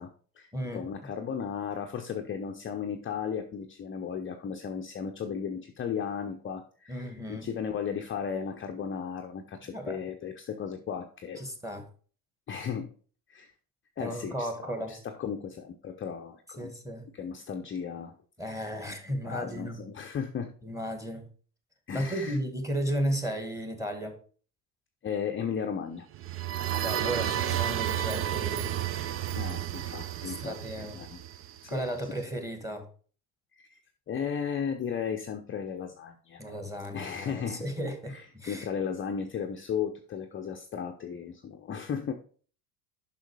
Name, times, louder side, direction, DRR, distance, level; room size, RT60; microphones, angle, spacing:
voice 1, 0.0-11.4 12.5-12.9 13.3-13.5 14.0-16.7 17.1-18.2 19.2-20.5 21.9-22.4 25.0-26.1 29.4-31.2 31.6-31.8 33.6-33.8 34.1-36.4 36.9-37.6 38.1-38.2 38.5-42.1, left 7 dB, 25° left, 4 dB, 0.7 m, -35 dB
voice 2, 0.5-0.9 6.9-7.5 9.7-10.0 11.4-11.8 14.0-15.0 16.6-17.0 18.4-19.8 20.6-21.3 21.9-24.2 26.6-28.7 30.2-31.0 31.7-32.9 36.4-38.7, equal, 5° right, 6 dB, 1.8 m, -34 dB
sound 1, 26.1-31.9, right 11 dB, 30° right, 0.4 m, -32 dB
6.4 x 5.7 x 4.8 m, 0.42 s
supercardioid pair, 90°, 47 cm